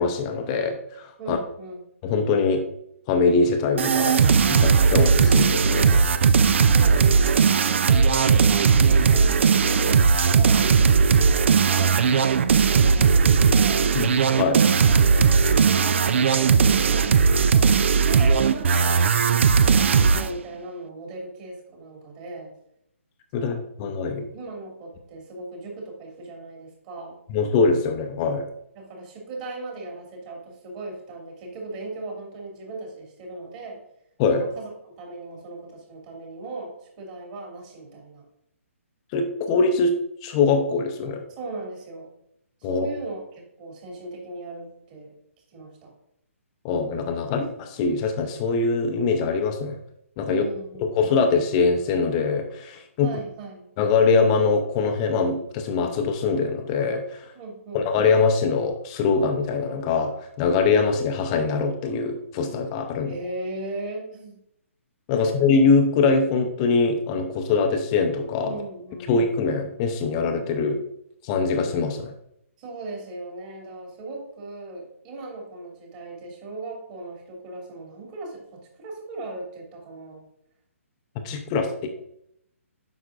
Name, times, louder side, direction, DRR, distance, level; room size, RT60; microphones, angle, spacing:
voice 1, 0.0-1.4 2.0-2.6 3.1-6.0 13.9-14.1 14.4-14.6 23.3-24.3 27.3-28.5 34.2-34.5 39.1-41.2 42.6-42.9 46.6-49.8 50.2-50.4 50.8-53.1 53.8-57.3 57.7-63.1 65.1-68.5 69.1-70.8 71.2-72.1 81.2-81.9, left 4 dB, 25° left, 5 dB, 0.7 m, -23 dB
voice 2, 1.2-1.8 6.7-10.7 11.1-12.3 12.7-13.9 14.5-14.8 15.0-17.1 17.5-19.2 19.7-22.5 23.3-23.6 24.3-27.1 28.7-33.8 34.4-34.7 35.0-38.2 41.3-42.1 42.6-45.1 45.5-45.9 50.3-51.0 53.0-53.7 57.3-57.8 63.1-64.4 65.2-65.3 68.4-69.2 72.6-80.2, right 2 dB, 30° right, 0 dB, 2.5 m, -37 dB
sound 1, 3.8-20.3, right 5 dB, 55° right, 0.4 m, -18 dB
9.0 x 5.9 x 2.5 m, 0.74 s
figure-of-eight pair, 135°, 8 cm